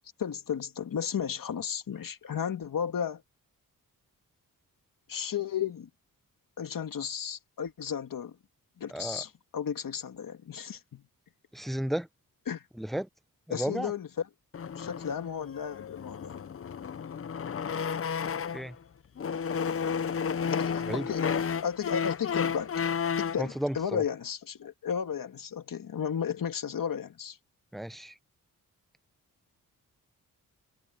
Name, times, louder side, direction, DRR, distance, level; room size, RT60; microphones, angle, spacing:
voice 1, 0.2-3.2 5.1-5.9 6.6-8.4 8.8-11.0 12.5-12.6 13.5-14.1 14.7-16.4 20.6-21.3 21.6-22.7 23.2-27.4, left 8 dB, 65° left, 2.5 m, -34 dB
voice 2, 8.9-9.2 11.5-12.1 12.8-13.1 13.5-13.9 18.5-18.8 20.8-21.1 23.4-24.0 27.7-28.2, right 1 dB, ahead, 0.6 m, -33 dB
sound 1, 14.5-18.7 19.2-23.5, left 6 dB, 40° left, 0.7 m, -32 dB
cardioid pair, 90°, 35 cm